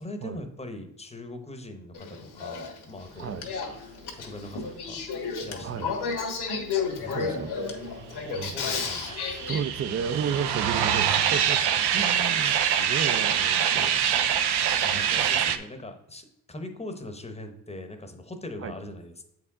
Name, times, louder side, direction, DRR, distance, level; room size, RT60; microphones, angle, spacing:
voice 1, 0.0-3.5 4.1-6.5 6.9-7.4 7.9-9.4 11.3-11.4 14.8-19.2, left 1 dB, 15° left, 6 dB, 0.8 m, -41 dB
Male speech man speaking / Female speech woman speaking / Conversation, 1.9-9.6, left 5 dB, 80° left, 1.4 m, -32 dB
voice 2, 7.1-7.9 8.4-8.6 9.5-11.6 11.9-14.0 14.9-15.3 18.6-18.7, right 7 dB, 40° right, 14 dB, 0.4 m, -33 dB
sound 1, 8.4-15.6, right 8 dB, 85° right, 0.6 m, -25 dB
7.9 x 4.7 x 3.6 m, 0.82 s
cardioid pair, 125°, 39 cm